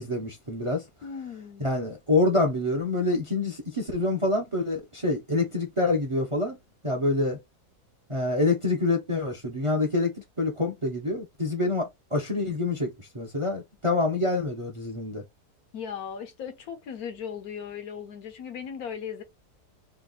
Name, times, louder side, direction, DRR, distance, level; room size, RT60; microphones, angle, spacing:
voice 1, 0.0-0.8 1.6-6.6 6.8-7.4 8.1-15.2, left 2 dB, 30° right, 0.6 m, -26 dB
voice 2, 1.0-1.6 15.7-19.2, left 7 dB, 70° left, 1.2 m, -37 dB
3.3 x 2.4 x 3.9 m
omnidirectional pair, 1.7 m